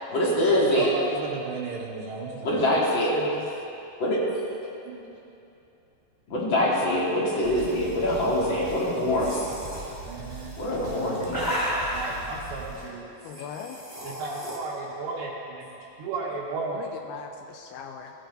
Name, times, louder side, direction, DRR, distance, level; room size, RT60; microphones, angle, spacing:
voice 1, 0.1-0.9 2.4-3.1 4.0-4.2 6.3-9.5 10.6-11.4, left 1 dB, 30° left, -5 dB, 2.9 m, -24 dB
voice 2, 0.7-2.7 4.9-5.2 9.0-9.3 9.7-10.6 11.9-13.1 14.0-15.7 16.0-16.8, right 4 dB, 85° right, -5 dB, 4.0 m, -34 dB
voice 3, 2.6-3.5 10.3-10.6 13.2-13.8 16.7-18.1, left 8 dB, 80° left, 4 dB, 2.4 m, -39 dB
sound 1, 7.4-12.9, right 4 dB, 45° right, 3.7 m, -42 dB
sound 2, 9.2-9.8 10.8-12.2 13.3-14.6, equal, 5° left, 1.6 m, -32 dB
18.0 x 15.5 x 4.1 m, 2.8 s
omnidirectional pair, 4.9 m